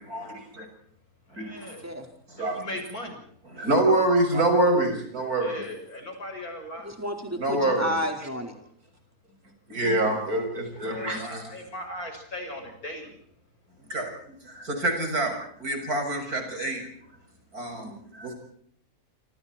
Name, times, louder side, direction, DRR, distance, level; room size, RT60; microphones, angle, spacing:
voice 1, 0.0-0.7 1.4-1.7 2.4-2.6 3.4-5.6 7.4-7.9 9.7-11.5 13.9-15.3 15.6-16.9 17.5-18.3, right 2 dB, 80° right, 4 dB, 7.2 m, -26 dB
voice 2, 1.4-1.9 2.5-3.2 5.4-6.9 10.8-13.2, left 1 dB, 75° left, 4 dB, 7.1 m, -38 dB
voice 3, 6.8-8.5, equal, 10° right, 3 dB, 4.7 m, -31 dB
27.5 x 26.5 x 4.5 m, 0.64 s
omnidirectional pair, 1.6 m